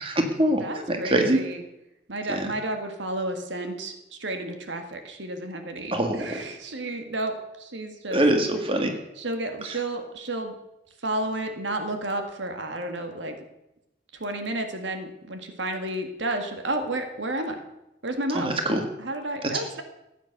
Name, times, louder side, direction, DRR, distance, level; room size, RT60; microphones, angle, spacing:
voice 1, 0.0-1.4 2.3-2.5 5.9-6.5 8.1-8.9 9.7-9.8 18.3-18.8 19.4-19.5, right 1 dB, 30° right, 4 dB, 1.7 m, -24 dB
voice 2, 0.6-1.6 2.1-8.2 9.2-10.5 11.0-13.4 14.2-17.6 18.0-18.5 19.0-19.8, right 1 dB, 85° right, 5 dB, 1.9 m, -31 dB
15.0 x 9.1 x 6.7 m, 0.91 s
head